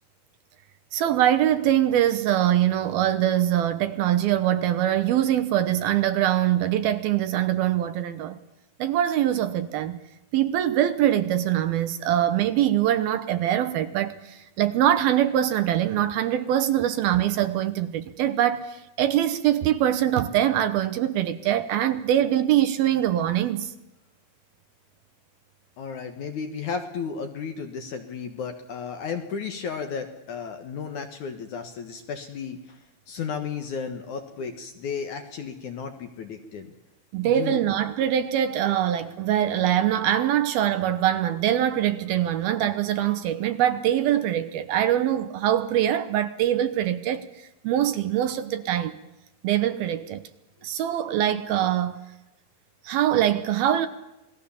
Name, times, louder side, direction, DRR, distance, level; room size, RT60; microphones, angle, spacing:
voice 1, 0.9-8.4 8.8-10.0 10.3-23.7 37.1-47.3 47.6-49.0 49.4-50.2 50.6-52.0 52.8-53.9, right 11 dB, 75° right, 2.6 m, -23 dB
voice 2, 25.8-32.8 33.1-36.7 37.2-37.7, left 6 dB, 60° left, 2.3 m, -34 dB
27.5 x 19.5 x 7.2 m
omnidirectional pair, 4.9 m